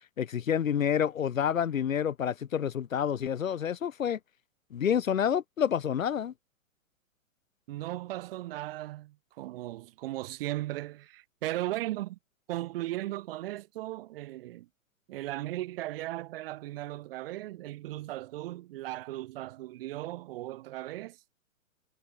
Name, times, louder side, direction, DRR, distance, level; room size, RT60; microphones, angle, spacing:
voice 1, 0.2-4.2 4.7-6.3, left 8 dB, 70° left, 1.0 m, -28 dB
voice 2, 7.7-12.2 12.5-14.7 15.1-21.2, right 16 dB, 45° right, 2.3 m, -37 dB
figure-of-eight pair, 115°, 41 cm